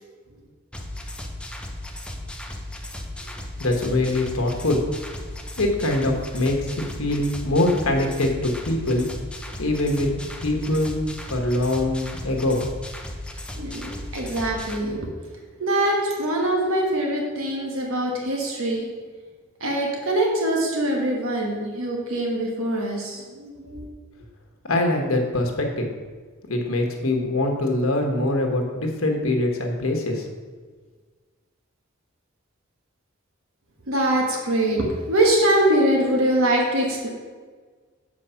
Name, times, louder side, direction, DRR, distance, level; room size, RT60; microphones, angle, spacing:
sound 1, 0.7-14.8, left 1 dB, 5° left, 0.6 m, -36 dB
voice 1, 3.6-4.9 5.6-9.1 9.6-11.0 11.3-12.7 24.7-25.9 26.5-30.3, left 1 dB, 85° left, 2 dB, 1.3 m, -23 dB
voice 2, 13.6-15.1 15.6-18.9 19.6-23.9 33.9-37.1, right 1 dB, 80° right, 0 dB, 1.5 m, -23 dB
7.5 x 4.7 x 5.7 m, 1.5 s
head